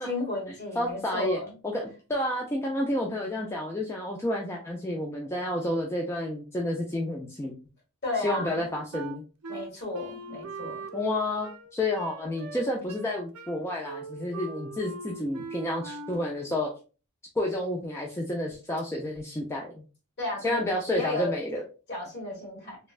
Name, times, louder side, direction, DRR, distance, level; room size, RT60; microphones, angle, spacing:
voice 1, 0.0-1.5 8.0-8.6 9.5-10.8 20.2-21.3 21.9-22.8, left 2 dB, 50° left, -2 dB, 1.3 m, -33 dB
voice 2, 0.8-7.5 8.2-9.2 10.9-16.7 17.4-19.8 20.4-21.6, left 1 dB, 10° left, -1 dB, 0.3 m, -30 dB
Wind instrument woodwind instrument, 8.9-16.4, right 3 dB, 75° right, 0.5 m, -41 dB
3.1 x 2.2 x 2.4 m, 0.34 s
head